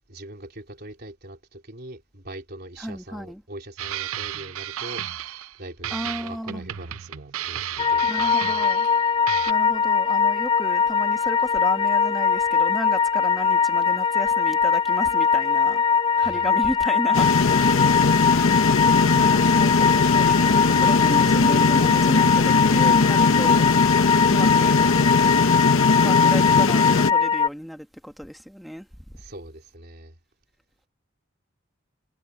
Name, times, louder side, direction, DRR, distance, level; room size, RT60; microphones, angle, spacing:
voice 1, 0.0-8.4 16.1-16.5 29.1-30.2, right 1 dB, 45° right, 3.9 m, -42 dB
voice 2, 2.8-3.4 5.9-6.6 8.0-8.9 9.5-15.8 16.2-17.4 19.1-23.6 24.3-24.9 26.0-29.0, equal, ahead, 1.4 m, -33 dB
sound 1, 3.8-5.6 5.8-9.0 9.3-9.5, right 11 dB, 75° right, 0.5 m, -33 dB
sound 2, 7.8-27.5, left 6 dB, 25° left, 0.5 m, -21 dB
sound 3, 17.1-27.1, left 4 dB, 70° left, 0.7 m, -20 dB
head